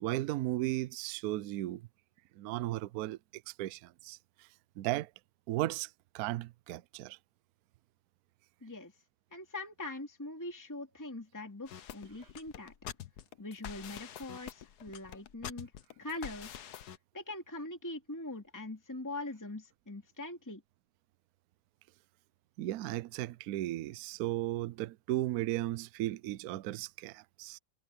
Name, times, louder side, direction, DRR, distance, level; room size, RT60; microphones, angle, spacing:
voice 1, 0.0-1.8 2.4-4.2 4.8-5.1 5.5-5.9 6.1-7.2 22.6-27.6, right 15 dB, 90° right, 0.8 m, -35 dB
voice 2, 8.6-8.9 9.3-12.7 13.4-15.7 16.0-16.6 17.1-20.6, left 2 dB, 10° left, 2.7 m, -42 dB
sound 1, 11.7-17.0, left 10 dB, 60° left, 1.3 m, -46 dB
omnidirectional pair, 2.2 m